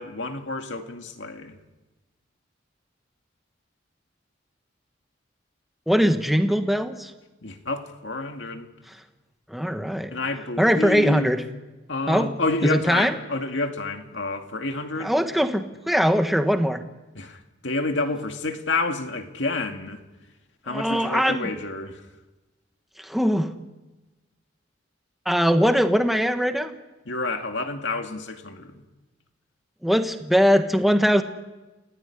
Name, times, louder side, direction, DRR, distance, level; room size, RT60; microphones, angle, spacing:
voice 1, 0.0-1.6 7.4-8.7 10.1-11.4 11.9-15.2 17.1-20.0 20.6-22.0 27.1-28.8, left 2 dB, 65° left, 2.3 m, -29 dB
voice 2, 5.9-7.1 9.5-10.1 10.6-11.4 12.1-12.3 12.6-13.1 15.0-16.8 20.7-21.5 23.0-23.5 25.2-26.7 29.8-31.2, equal, ahead, 1.5 m, -21 dB
29.0 x 16.5 x 10.0 m
head